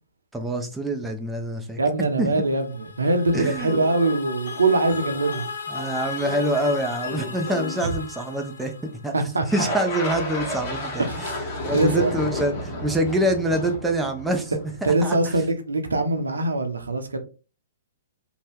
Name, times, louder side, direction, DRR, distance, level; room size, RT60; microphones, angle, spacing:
voice 1, 0.3-2.3 3.3-3.8 5.7-8.7 9.0-9.1 9.5-11.1 11.6-14.5 14.8-15.2, right 1 dB, 5° right, 0.5 m, -25 dB
voice 2, 1.8-5.5 9.1-9.7 11.1-11.3 11.7-12.1 14.8-17.2, right 2 dB, 85° right, 0.7 m, -23 dB
sound 1, 2.2-9.4, left 5 dB, 80° left, 0.6 m, -36 dB
sound 2, 3.6-8.7, left 4 dB, 55° left, 1.1 m, -38 dB
sound 3, 9.5-14.8, left 1 dB, 35° left, 1.2 m, -31 dB
2.7 x 2.2 x 3.5 m
hypercardioid pair, 125°, 0 cm